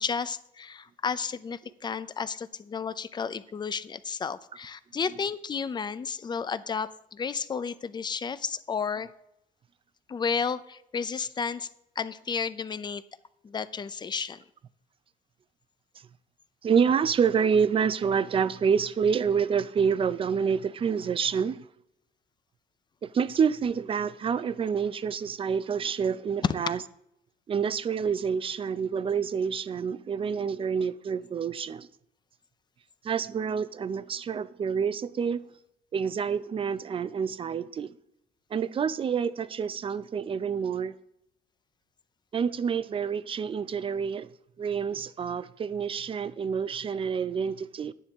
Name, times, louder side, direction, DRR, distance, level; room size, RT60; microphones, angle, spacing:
voice 1, 0.0-9.1 10.1-11.7 12.0-13.0 13.4-14.4 26.4-26.5, left 6 dB, 25° left, 0.5 m, -32 dB
voice 2, 16.6-21.7 23.0-26.8 27.5-31.9 33.0-35.4 35.9-37.9 38.5-40.9 42.3-44.3 44.6-47.9, right 6 dB, 30° right, 0.5 m, -28 dB
11.5 x 9.9 x 3.6 m
cardioid pair, 110°, 17 cm